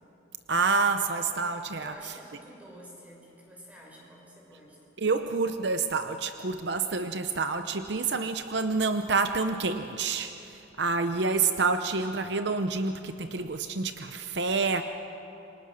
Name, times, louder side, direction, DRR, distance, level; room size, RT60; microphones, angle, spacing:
voice 1, 0.5-2.1 5.0-14.8, right 4 dB, 65° right, 8 dB, 0.8 m, -28 dB
voice 2, 1.8-4.8, equal, 10° right, -3 dB, 6.0 m, -50 dB
28.0 x 24.5 x 6.5 m, 3.0 s
head